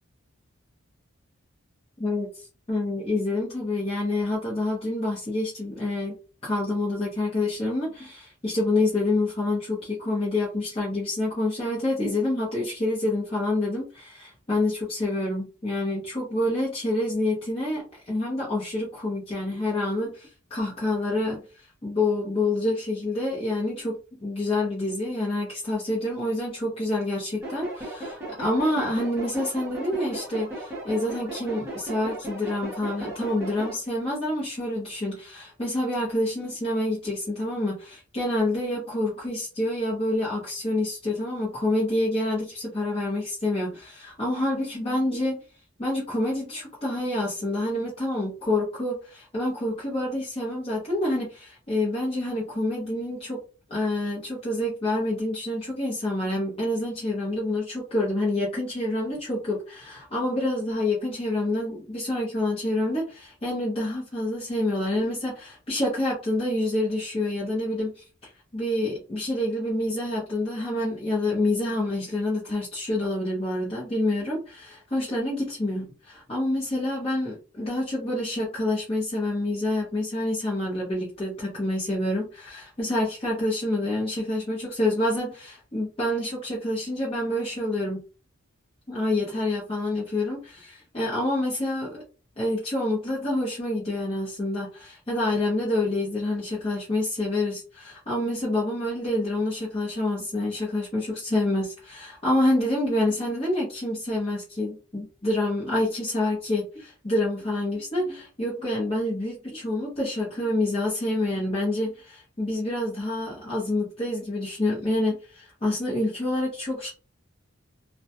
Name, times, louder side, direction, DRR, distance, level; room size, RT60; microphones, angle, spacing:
voice 1, 2.0-6.2 6.4-23.9 24.2-45.4 45.8-53.4 53.7-88.0 88.9-92.0 92.4-116.9, left 1 dB, 25° left, -6 dB, 0.7 m, -27 dB
sound 1, 27.4-33.8, right 1 dB, 10° right, 0.8 m, -36 dB
2.3 x 2.1 x 2.7 m, 0.34 s
head